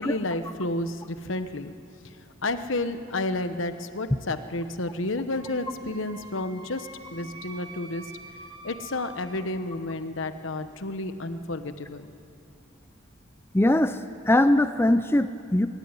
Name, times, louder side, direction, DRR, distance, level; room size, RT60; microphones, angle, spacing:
voice 1, 0.0-1.7 2.4-8.0 8.6-12.1, left 2 dB, 70° left, 10 dB, 1.1 m, -31 dB
Wind instrument woodwind instrument, 5.3-9.5, right 3 dB, 25° right, 1.6 m, -46 dB
voice 2, 13.5-14.0 14.3-15.7, left 1 dB, 10° left, 9 dB, 0.5 m, -21 dB
24.0 x 13.0 x 9.8 m, 2.6 s
head